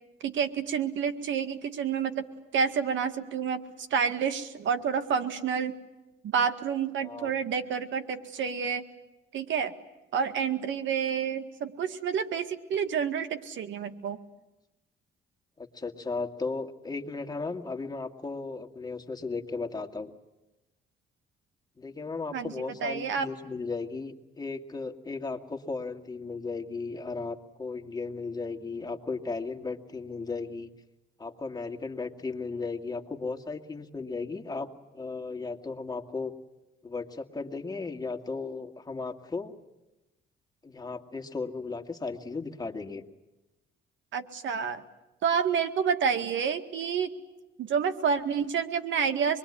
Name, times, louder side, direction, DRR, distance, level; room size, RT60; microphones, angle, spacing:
voice 1, 0.2-2.3 2.5-5.7 6.2-8.8 9.3-9.7 10.1-14.2 22.3-22.5 22.8-23.3 44.1-44.8 45.2-47.1 47.6-49.4, right 7 dB, 75° right, 9 dB, 2.0 m, -29 dB
voice 2, 7.0-7.3 15.6-20.1 21.8-30.7 31.2-36.3 36.8-39.5 40.6-43.0, left 4 dB, 20° left, 3 dB, 2.2 m, -35 dB
26.0 x 21.5 x 9.9 m, 1.0 s
cardioid pair, 90°, 20 cm